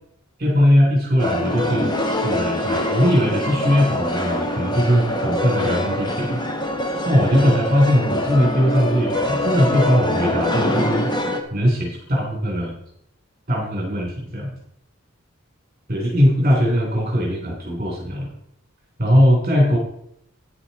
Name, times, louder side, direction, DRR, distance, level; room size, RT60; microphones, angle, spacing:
voice 1, 0.4-6.4 6.8-11.1 11.5-12.7 13.5-14.5 15.9-18.3 19.0-19.8, equal, 35° right, -1 dB, 2.9 m, -20 dB
sound 1, 1.2-11.4, left 1 dB, 20° left, 1.2 m, -24 dB
9.8 x 9.6 x 4.1 m, 0.74 s
head